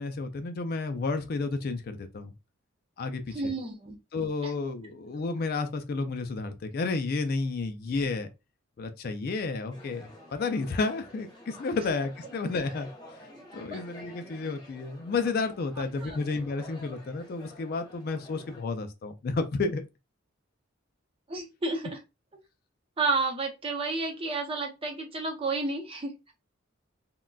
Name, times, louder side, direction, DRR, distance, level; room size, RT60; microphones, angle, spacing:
voice 1, 0.0-2.3 3.0-3.5 4.1-8.3 8.8-12.9 13.5-19.8, left 3 dB, 50° left, 0.3 m, -31 dB
voice 2, 3.3-4.0 4.4-4.5 11.8-11.9 13.7-13.8 16.0-16.2 21.3-22.0 23.0-26.3, right 3 dB, 25° right, 0.6 m, -31 dB
sound 1, 9.7-18.6, left 1 dB, 20° left, 0.7 m, -49 dB
3.7 x 2.2 x 2.2 m
head